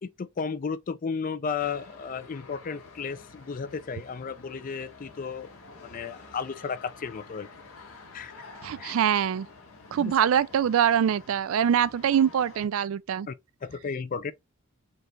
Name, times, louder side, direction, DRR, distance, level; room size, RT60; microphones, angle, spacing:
voice 1, 0.0-5.5 5.8-7.5 8.1-8.5 8.8-9.0 10.0-10.1 13.3-13.4 13.6-14.3, left 5 dB, 40° left, 0.4 m, -34 dB
sound 1, 1.6-12.7, left 3 dB, 85° left, 1.5 m, -49 dB
voice 2, 8.6-9.5 9.9-13.3, right 8 dB, 75° right, 0.3 m, -24 dB
5.2 x 2.4 x 3.0 m
head